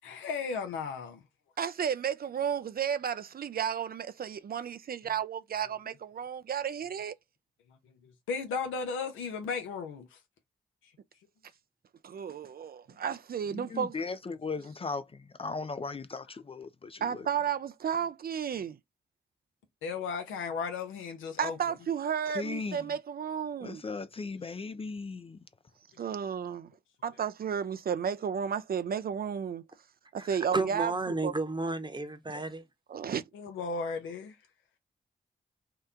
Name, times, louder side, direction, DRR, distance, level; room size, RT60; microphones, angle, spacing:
voice 1, 0.0-1.2 7.8-10.1 19.8-21.6 33.3-34.4, left 5 dB, 90° left, 0.7 m, -35 dB
voice 2, 1.6-7.1 12.0-14.0 17.0-18.8 21.4-23.8 26.0-26.7 27.0-29.6 30.1-30.9 31.2-31.3 32.3-32.4 32.9-33.2, right 8 dB, 50° right, 0.4 m, -33 dB
voice 3, 13.5-17.2 22.3-22.8 23.6-25.4, left 4 dB, 30° left, 0.4 m, -37 dB
voice 4, 30.2-32.6, right 2 dB, 25° right, 0.9 m, -32 dB
2.8 x 2.2 x 3.5 m
supercardioid pair, 40°, 20 cm